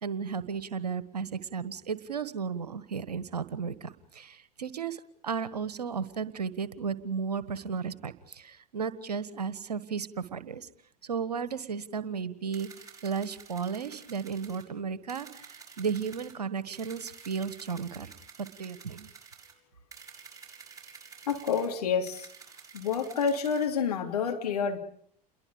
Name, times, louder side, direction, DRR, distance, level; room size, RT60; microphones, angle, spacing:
voice 1, 0.0-10.7 11.0-12.7 13.0-18.1 18.4-19.1, right 6 dB, 75° right, 14 dB, 1.5 m, -34 dB
sound 1, 12.5-14.7 15.1-16.3 16.7-19.5 19.9-21.7 22.1-23.7, right 6 dB, 15° right, 6.6 m, -50 dB
voice 2, 21.3-22.3 22.7-24.8, left 6 dB, 70° left, 3 dB, 3.2 m, -28 dB
29.0 x 22.0 x 5.3 m, 0.63 s
figure-of-eight pair, 80°, 21 cm